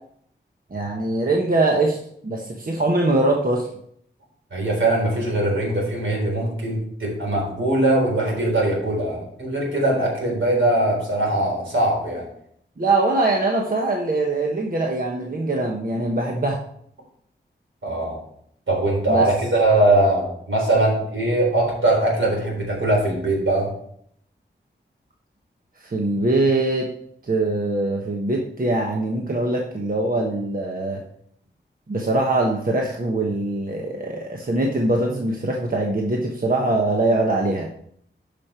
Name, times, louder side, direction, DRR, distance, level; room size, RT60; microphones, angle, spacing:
voice 1, 0.7-2.0 2.2-3.7 12.8-16.6 19.1-19.3 25.8-26.9 27.2-31.0 31.9-37.7, right 2 dB, 45° right, 0 dB, 1.2 m, -22 dB
voice 2, 4.5-12.3 17.8-18.2 18.7-23.7, right 1 dB, 80° right, -2 dB, 4.1 m, -21 dB
10.5 x 5.4 x 4.4 m, 0.67 s
wide cardioid pair, 75°, 20 cm